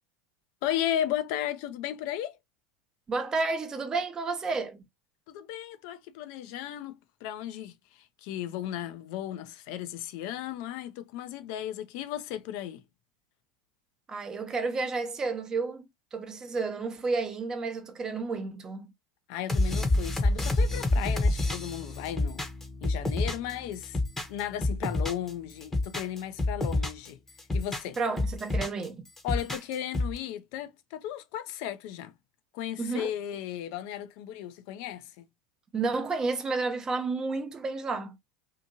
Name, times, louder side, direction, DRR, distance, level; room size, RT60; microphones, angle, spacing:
voice 1, 0.6-2.4 5.3-12.8 19.3-22.4 22.8-24.0 24.3-27.2 27.5-28.0 29.2-32.1 32.5-35.2, left 11 dB, 60° left, 0.5 m, -35 dB
voice 2, 3.1-4.8 14.1-15.8 16.1-18.9 28.0-29.1 32.8-33.1 35.7-38.2, right 3 dB, 25° right, 0.7 m, -31 dB
sound 1, 19.5-23.5 23.8-25.3 25.6-27.1 27.4-28.8 29.2-30.2, left 2 dB, 10° left, 0.9 m, -28 dB
2.8 x 2.6 x 2.7 m
hypercardioid pair, 80°, 2 cm